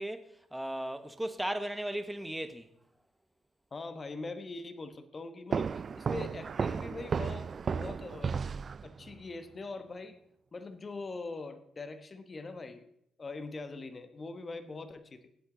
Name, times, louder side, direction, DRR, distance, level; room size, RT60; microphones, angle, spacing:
voice 1, 0.0-2.7, right 1 dB, 5° right, 1.1 m, -36 dB
voice 2, 3.7-8.4 8.8-10.2 10.5-12.9 13.2-15.3, left 3 dB, 35° left, 1.1 m, -42 dB
sound 1, 5.5-9.2, right 6 dB, 45° right, 0.3 m, -34 dB
17.5 x 7.9 x 3.9 m
cardioid pair, 90°, 0 cm